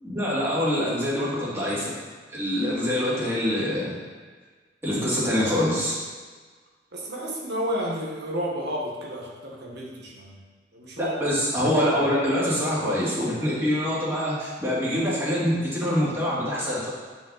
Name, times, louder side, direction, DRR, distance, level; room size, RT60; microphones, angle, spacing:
voice 1, 0.0-1.9 2.3-3.9 4.8-6.0 11.0-16.9, equal, 15° right, -8 dB, 2.5 m, -25 dB
voice 2, 6.9-10.4 10.7-11.1, equal, 60° right, -2 dB, 1.6 m, -31 dB
9.2 x 5.7 x 4.2 m, 1.5 s
head